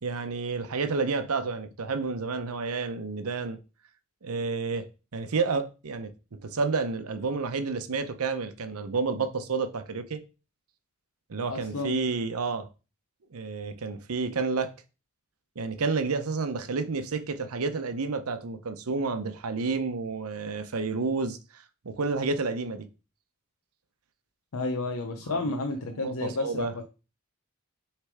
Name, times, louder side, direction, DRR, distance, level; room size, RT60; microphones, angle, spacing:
voice 1, 0.0-3.6 4.2-4.9 5.1-10.2 11.3-12.7 13.3-14.7 15.6-22.9 25.3-25.6 25.9-26.7, right 4 dB, 85° right, 0.7 m, -30 dB
voice 2, 11.5-12.0 24.5-26.9, left 2 dB, 75° left, 0.7 m, -31 dB
6.5 x 3.3 x 4.8 m
head